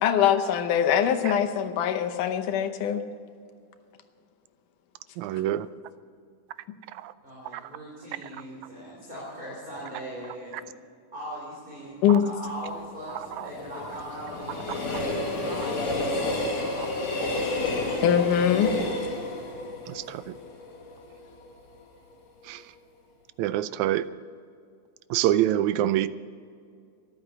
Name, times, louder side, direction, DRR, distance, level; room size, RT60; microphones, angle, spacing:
voice 1, 0.0-3.0 12.0-12.2 18.0-18.8, left 9 dB, 85° left, 7 dB, 2.5 m, -22 dB
voice 2, 5.2-5.7 7.0-7.1 19.9-20.2 22.5-22.6 23.4-24.1 25.1-26.1, right 13 dB, 80° right, 15 dB, 1.8 m, -25 dB
voice 3, 7.2-10.7 11.1-17.1, equal, 15° right, -5 dB, 3.6 m, -40 dB
Train, 12.4-21.4 21.8-21.9, left 2 dB, 60° left, 3.4 m, -31 dB
13.5 x 11.5 x 6.8 m, 2.2 s
omnidirectional pair, 3.6 m